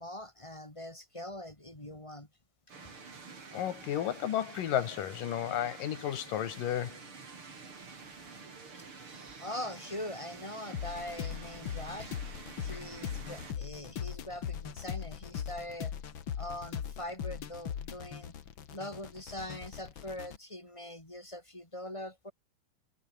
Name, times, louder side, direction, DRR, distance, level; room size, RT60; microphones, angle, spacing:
voice 1, 0.0-2.3 8.7-8.8 9.1-12.1 12.6-15.9 16.4-18.4 18.7-22.3, left 1 dB, 10° left, 3.4 m, -42 dB
sound 1, 2.7-13.5, right 4 dB, 40° right, 4.5 m, -49 dB
voice 2, 3.5-7.0 12.7-12.8, left 11 dB, 75° left, 3.4 m, -33 dB
sound 2, 10.7-20.4, left 8 dB, 50° left, 1.6 m, -40 dB
omnidirectional pair, 4.0 m